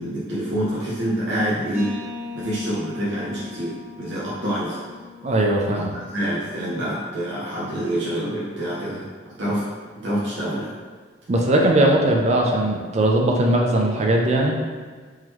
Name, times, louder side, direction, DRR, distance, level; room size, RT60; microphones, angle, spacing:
voice 1, 0.0-1.9 2.3-4.8 5.9-9.6 10.0-10.7, equal, 65° right, -8 dB, 0.8 m, -26 dB
sound 1, 1.7-7.3, left 4 dB, 15° right, 1.0 m, -39 dB
voice 2, 5.2-5.9 11.3-14.6, right 1 dB, 35° right, 0 dB, 0.4 m, -19 dB
3.7 x 3.0 x 3.0 m, 1.5 s
head